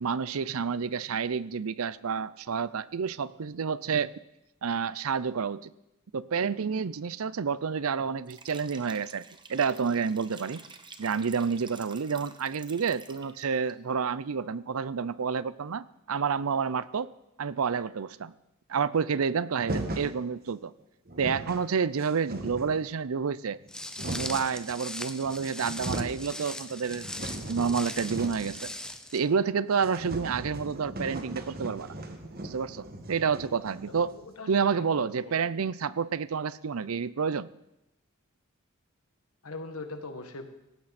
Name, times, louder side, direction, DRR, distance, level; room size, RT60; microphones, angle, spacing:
voice 1, 0.0-4.1 4.6-5.7 6.1-9.2 9.5-10.6 11.0-17.1 17.4-18.3 18.7-20.7 21.2-23.6 24.1-28.7 29.1-31.9 32.4-34.1 34.5-37.5, right 6 dB, 75° right, 18 dB, 0.5 m, -29 dB
Liquid, 8.2-13.7, right 4 dB, 20° right, 1.0 m, -50 dB
sound 1, 19.6-20.2 20.8-20.9 21.1-21.6 22.0-22.9 23.5-24.5 25.2-25.3 25.6-26.2 26.6-28.6 28.8-28.9 29.3-29.4 29.7-34.2, right 1 dB, 45° right, 1.6 m, -38 dB
Walk footsteps, 23.7-29.2, left 1 dB, 5° left, 0.7 m, -40 dB
voice 2, 33.9-35.5 39.4-40.5, left 2 dB, 90° left, 6 dB, 1.8 m, -41 dB
18.0 x 15.5 x 4.3 m, 0.91 s
head